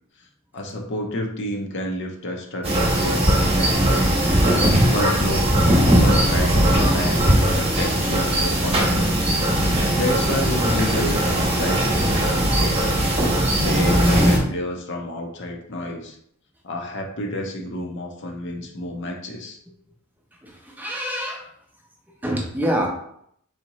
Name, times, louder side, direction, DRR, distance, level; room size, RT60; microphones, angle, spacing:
voice 1, 0.5-4.1 4.9-5.5 6.0-7.2 7.5-9.3 9.7-12.8 13.5-16.2 16.6-19.6, left 1 dB, 55° left, 2 dB, 0.7 m, -30 dB
sound 1, 2.6-14.4, right 1 dB, 30° right, 1.0 m, -19 dB
voice 2, 20.4-21.4 22.2-22.9, equal, 10° right, 0 dB, 0.6 m, -26 dB
4.2 x 3.6 x 3.0 m, 0.69 s
head